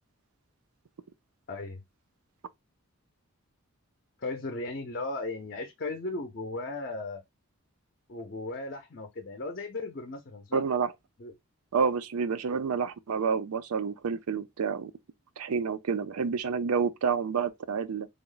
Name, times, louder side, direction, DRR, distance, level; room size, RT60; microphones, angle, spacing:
voice 1, 1.5-1.8 4.2-7.2 8.1-10.7 11.2-11.3, left 2 dB, 45° left, 0.5 m, -36 dB
voice 2, 10.5-10.9 11.7-14.9 15.4-18.1, right 6 dB, 85° right, 0.4 m, -29 dB
3.4 x 2.0 x 3.8 m
head